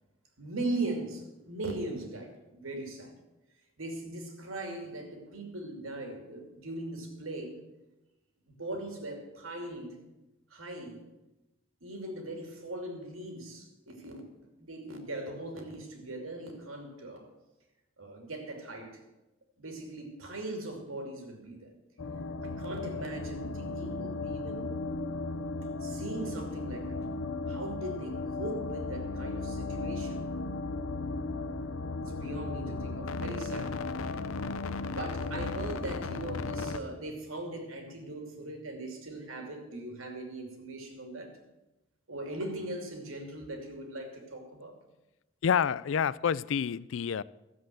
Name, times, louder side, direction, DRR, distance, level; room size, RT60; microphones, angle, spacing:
voice 1, 0.4-3.1 3.8-7.6 8.5-9.9 10.5-11.1 11.8-14.3 14.6-17.3 18.0-19.0 19.6-21.7 22.4-24.8 25.8-27.0 27.5-30.3 32.0-33.8 34.8-41.3 42.1-44.7, right 2 dB, 80° right, 4 dB, 2.7 m, -39 dB
sound 1, 22.0-36.8, left 3 dB, 90° left, 0.7 m, -35 dB
voice 2, 45.4-47.2, left 7 dB, 65° left, 20 dB, 0.3 m, -28 dB
14.0 x 7.6 x 7.6 m, 1.0 s
head